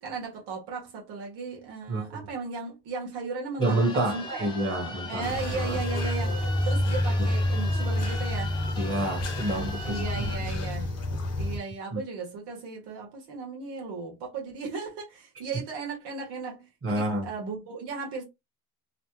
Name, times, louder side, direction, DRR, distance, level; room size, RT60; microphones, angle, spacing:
voice 1, 0.0-4.5 5.1-8.6 9.8-18.2, right 4 dB, 75° right, 1.4 m, -36 dB
sound 1, 3.6-10.4, left 2 dB, 10° left, 0.9 m, -40 dB
voice 2, 3.6-5.8 8.8-10.6 11.9-12.0 16.8-17.3, right 1 dB, 35° right, 1.5 m, -29 dB
sound 2, 5.2-11.6, left 1 dB, 40° left, 1.1 m, -28 dB
3.2 x 2.2 x 3.1 m
cardioid pair, 110°, 40 cm